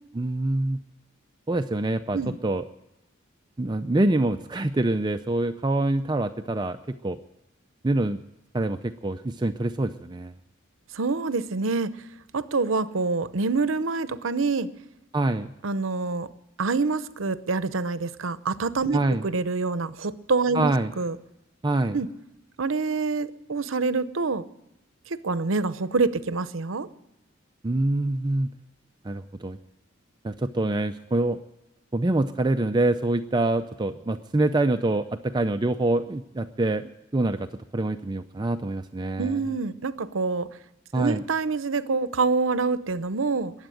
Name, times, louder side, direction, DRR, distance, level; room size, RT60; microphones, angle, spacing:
voice 1, 0.1-0.8 1.5-2.2 2.4-2.6 3.6-7.2 7.8-8.2 8.5-10.3 15.1-15.5 18.9-19.2 20.5-20.9 21.6-22.0 27.6-28.5 29.0-29.6 30.2-31.4 31.9-37.5 37.7-39.4 40.9-41.2, right 2 dB, 20° right, 8 dB, 0.4 m, -25 dB
voice 2, 10.9-11.9 12.3-14.7 15.6-16.3 16.6-21.2 21.9-22.1 22.6-24.4 25.1-26.9 39.2-40.5 40.9-43.5, right 4 dB, 80° right, 15 dB, 0.7 m, -26 dB
21.5 x 8.1 x 7.8 m, 0.92 s
head